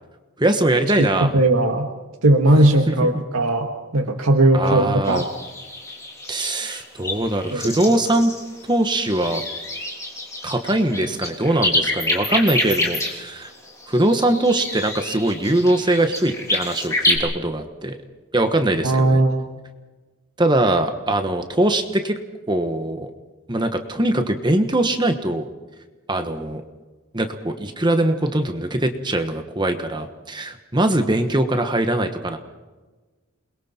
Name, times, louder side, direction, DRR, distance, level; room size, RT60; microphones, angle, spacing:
voice 1, 0.4-1.3 2.9-3.0 4.5-5.2 6.3-8.3 8.7-9.4 10.4-13.5 13.9-18.0 18.3-19.2 20.4-22.2 22.5-23.1 23.5-25.4 26.1-26.6 27.1-32.4, right 1 dB, 20° right, 6 dB, 1.3 m, -21 dB
voice 2, 1.0-1.9 2.2-5.3 7.5-7.8 18.8-19.4, right 1 dB, 85° right, 3 dB, 1.8 m, -18 dB
sound 1, 5.0-17.2, left 2 dB, 15° left, 3.6 m, -27 dB
28.5 x 22.0 x 4.4 m, 1.3 s
head